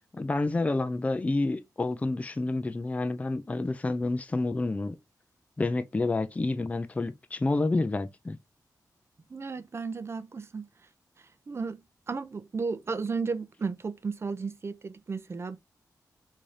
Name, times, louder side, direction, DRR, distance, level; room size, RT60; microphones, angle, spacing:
voice 1, 0.1-5.0 5.6-8.4, left 2 dB, 20° left, 0.4 m, -29 dB
voice 2, 9.3-10.7 11.5-11.8 12.1-15.6, right 4 dB, 40° right, 0.5 m, -34 dB
3.7 x 2.7 x 3.2 m
wide cardioid pair, 115°, 7 cm